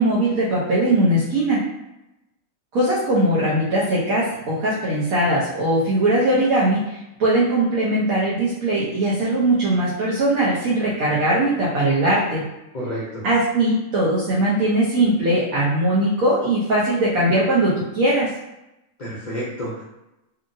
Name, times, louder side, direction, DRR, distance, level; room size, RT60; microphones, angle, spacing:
voice 1, 0.0-1.6 2.7-12.4 13.2-18.3, right 1 dB, 80° right, -7 dB, 1.2 m, -20 dB
voice 2, 12.7-13.2 19.0-19.8, equal, 50° left, -7 dB, 0.6 m, -30 dB
2.7 x 2.7 x 2.5 m, 0.94 s
omnidirectional pair, 1.5 m